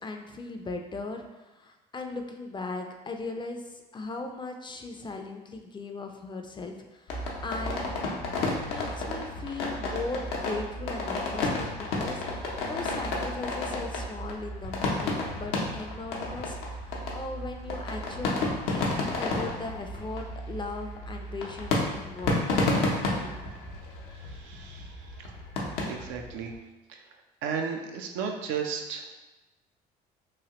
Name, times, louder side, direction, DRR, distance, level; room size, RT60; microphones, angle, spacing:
voice 1, 0.0-7.9 8.4-22.5 23.2-23.4, left 3 dB, 25° left, 4 dB, 0.4 m, -38 dB
sound 1, 7.1-26.5, left 2 dB, 80° left, 0.7 m, -31 dB
voice 2, 24.3-25.3 25.9-26.5 26.9-27.0 27.4-29.1, right 6 dB, 75° right, 3 dB, 0.5 m, -34 dB
3.1 x 2.3 x 2.9 m, 1.1 s
hypercardioid pair, 65°, 20 cm